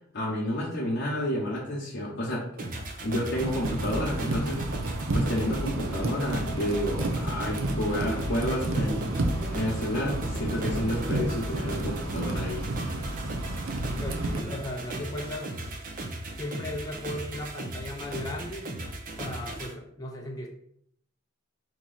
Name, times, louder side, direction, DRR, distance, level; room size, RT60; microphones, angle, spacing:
voice 1, 0.1-2.5 3.0-4.6 5.1-9.1 9.5-12.7, left 1 dB, 55° left, -5 dB, 0.9 m, -30 dB
sound 1, 2.6-19.7, right 2 dB, 45° right, 0.7 m, -37 dB
sound 2, 3.3-14.4, right 1 dB, 90° right, 0.7 m, -31 dB
voice 2, 14.0-15.6 16.4-18.7 19.2-20.5, left 1 dB, 20° left, -1 dB, 0.5 m, -36 dB
4.7 x 2.8 x 4.0 m, 0.71 s
head